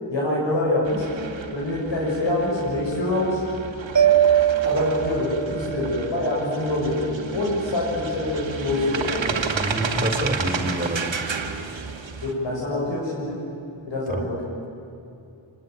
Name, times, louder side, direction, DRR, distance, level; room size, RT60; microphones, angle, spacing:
voice 1, 0.1-1.1 1.5-3.4 4.6-9.4 12.2-13.4 13.8-14.4, left 1 dB, 65° left, -4 dB, 6.7 m, -25 dB
sound 1, 0.8-12.3, right 5 dB, 70° right, 2.4 m, -32 dB
Mallet percussion, 4.0-6.0, right 9 dB, 35° right, 1.6 m, -20 dB
voice 2, 9.3-11.1 14.1-14.2, right 1 dB, 20° right, 3 dB, 3.8 m, -27 dB
26.0 x 20.5 x 9.1 m, 2.7 s
wide cardioid pair, 110°, 47 cm